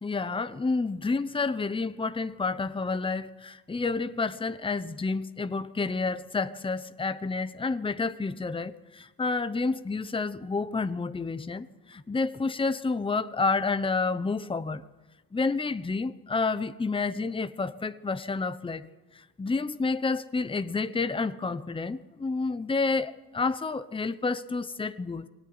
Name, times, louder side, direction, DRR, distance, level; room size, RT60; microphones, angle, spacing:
voice 1, 0.0-14.8 15.3-18.9 19.1-25.3, left 4 dB, 15° left, 1.0 m, -29 dB
22.5 x 18.0 x 9.7 m
cardioid pair, 90°, 30 cm